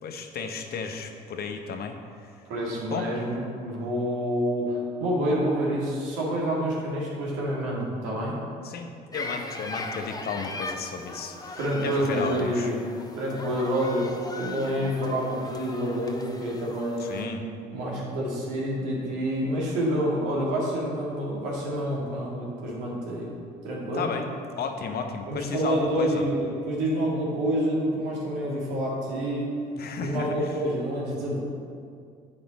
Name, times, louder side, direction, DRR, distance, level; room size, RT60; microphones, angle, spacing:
voice 1, 0.0-2.0 2.2-2.3 2.9-3.1 8.6-12.7 17.0-17.4 23.9-24.3 24.5-26.2 29.8-30.5, left 5 dB, 55° left, 5 dB, 0.9 m, -33 dB
voice 2, 2.5-8.4 11.6-12.8 13.2-17.2 17.7-23.3 23.6-24.1 25.3-29.5 30.0-31.4, equal, 75° right, -4 dB, 2.0 m, -28 dB
sound 1, 9.1-17.2, left 2 dB, 20° left, 0.9 m, -39 dB
8.6 x 5.3 x 4.1 m, 2.3 s
hypercardioid pair, 60°, 20 cm